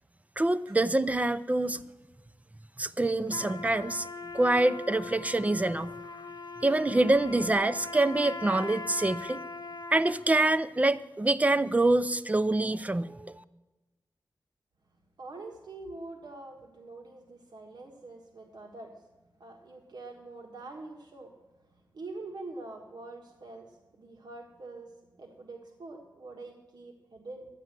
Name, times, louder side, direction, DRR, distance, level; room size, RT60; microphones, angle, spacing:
voice 1, 0.4-1.8 2.8-4.1 4.3-5.9 6.6-9.4 9.9-13.3, right 2 dB, 20° right, 12 dB, 0.5 m, -26 dB
Trumpet, 3.3-10.3, left 3 dB, 65° left, 0.8 m, -40 dB
voice 2, 15.2-19.0 19.4-21.3 21.9-27.5, right 2 dB, 70° right, 2 dB, 1.5 m, -45 dB
12.5 x 9.3 x 7.5 m, 1.1 s
wide cardioid pair, 105°, 7 cm